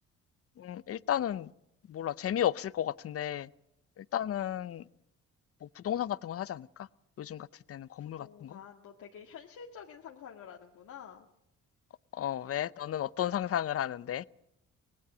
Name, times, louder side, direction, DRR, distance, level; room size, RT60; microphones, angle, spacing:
voice 1, 0.6-1.5 1.9-3.5 4.0-4.8 5.6-6.7 7.2-8.6 12.1-14.2, left 11 dB, 50° left, 19 dB, 0.7 m, -33 dB
voice 2, 8.0-11.3, left 7 dB, 75° left, 1 dB, 1.9 m, -49 dB
24.5 x 19.0 x 6.2 m, 0.82 s
cardioid pair, 90°, 30 cm